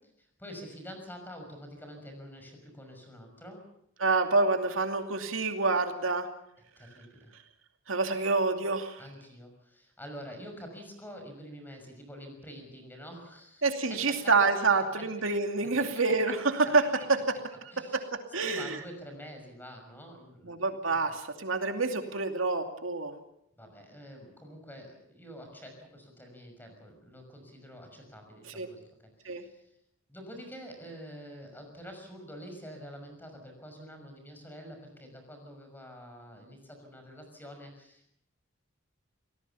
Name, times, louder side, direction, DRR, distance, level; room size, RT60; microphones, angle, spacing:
voice 1, 0.0-3.6 6.8-7.3 9.0-14.3 15.6-15.9 17.7-18.1 18.4-20.6 23.6-28.8 29.2-29.7 30.1-38.1, equal, 10° left, 4 dB, 6.0 m, -47 dB
voice 2, 4.0-6.3 7.9-9.0 13.6-17.4 17.9-18.8 20.5-23.1 28.5-28.7 29.2-29.4, right 3 dB, 85° right, 5 dB, 2.6 m, -27 dB
27.0 x 18.0 x 7.0 m, 0.75 s
head